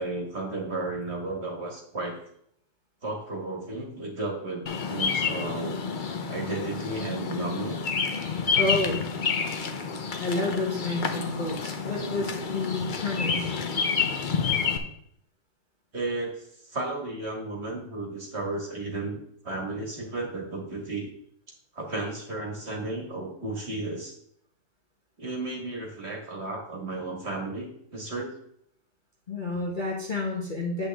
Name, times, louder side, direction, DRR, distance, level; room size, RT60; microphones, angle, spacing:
voice 1, 0.0-2.2 3.0-4.6 4.9-5.8 6.3-7.8 15.9-21.1 21.7-24.1 25.2-28.3, right 2 dB, 35° right, 0 dB, 1.9 m, -33 dB
Bird vocalization bird call bird song, 4.7-14.8, left 5 dB, 55° left, 0.5 m, -29 dB
voice 2, 8.6-9.0 10.2-13.5 29.3-30.9, left 2 dB, 30° left, -3 dB, 1.2 m, -30 dB
8.5 x 8.0 x 3.5 m, 0.70 s
omnidirectional pair, 2.0 m